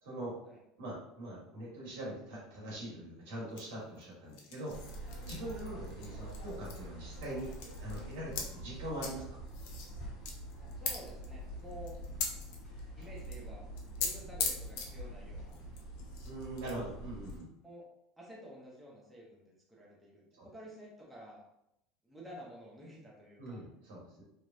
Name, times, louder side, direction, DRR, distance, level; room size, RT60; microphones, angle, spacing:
voice 1, 0.0-0.3 0.8-4.8 5.2-7.5 7.8-9.4 16.2-17.5 20.4-20.5 23.4-24.2, right 1 dB, 90° right, -5 dB, 1.5 m, -42 dB
sound 1, 3.6-6.9 7.1-8.4 8.9-9.1 9.5-13.5 13.8-14.1 14.4-14.9 15.5-16.7 17.2-17.4, left 5 dB, 65° left, 0.5 m, -41 dB
sound 2, 4.7-17.4, right 1 dB, 40° left, 1.2 m, -45 dB
voice 2, 10.8-12.0 13.0-13.6 14.0-15.5 17.6-17.9 18.2-21.4 22.0-23.6, equal, 5° right, -4 dB, 0.6 m, -51 dB
3.2 x 2.1 x 2.6 m, 0.81 s
supercardioid pair, 150°, 0 cm